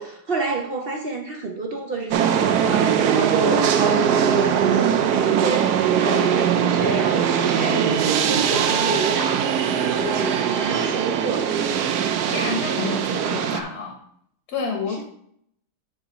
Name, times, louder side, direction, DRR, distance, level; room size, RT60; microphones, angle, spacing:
voice 1, 0.0-11.6, right 3 dB, 45° right, 2 dB, 0.8 m, -29 dB
sound 1, 2.1-13.6, right 8 dB, 85° right, 1.2 m, -21 dB
voice 2, 12.3-14.0 14.5-15.0, left 4 dB, 75° left, 2 dB, 1.6 m, -29 dB
9.5 x 3.8 x 5.0 m, 0.69 s
omnidirectional pair, 1.7 m